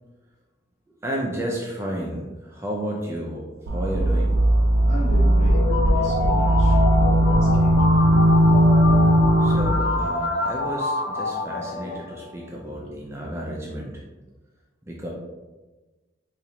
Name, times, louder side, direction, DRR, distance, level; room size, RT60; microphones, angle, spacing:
voice 1, 0.9-3.4 3.7-4.4 5.7-5.8 9.4-14.0 14.9-15.1, right 1 dB, 15° right, -2 dB, 0.4 m, -32 dB
sound 1, 3.7-10.0, right 1 dB, 80° right, 0.4 m, -18 dB
voice 2, 4.8-7.9 11.8-12.0 12.7-13.0, left 1 dB, 35° left, -4 dB, 0.9 m, -36 dB
sound 2, 5.5-12.3, left 3 dB, 65° left, 0.4 m, -27 dB
4.2 x 2.4 x 2.8 m, 1.2 s
head